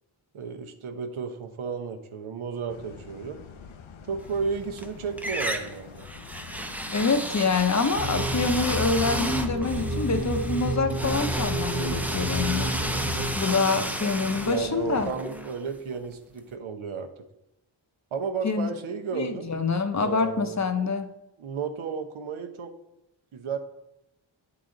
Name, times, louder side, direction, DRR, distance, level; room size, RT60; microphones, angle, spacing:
voice 1, 0.3-3.4 4.1-6.1 14.0-14.1 14.4-17.1 18.1-19.5 19.9-20.7 21.4-22.7 23.3-23.6, right 5 dB, 85° right, 6 dB, 0.8 m, -33 dB
sound 1, 2.7-15.1, left 6 dB, 75° left, 0.7 m, -45 dB
sound 2, 4.3-4.9 5.2-16.1, right 1 dB, 5° right, 0.5 m, -33 dB
voice 2, 6.9-12.7 13.3-15.1 18.4-18.7 19.1-21.1, left 4 dB, 35° left, 8 dB, 0.7 m, -26 dB
sound 3, 8.0-13.4, right 1 dB, 55° right, 1.0 m, -30 dB
9.1 x 3.9 x 3.8 m, 0.88 s
cardioid pair, 60°, 48 cm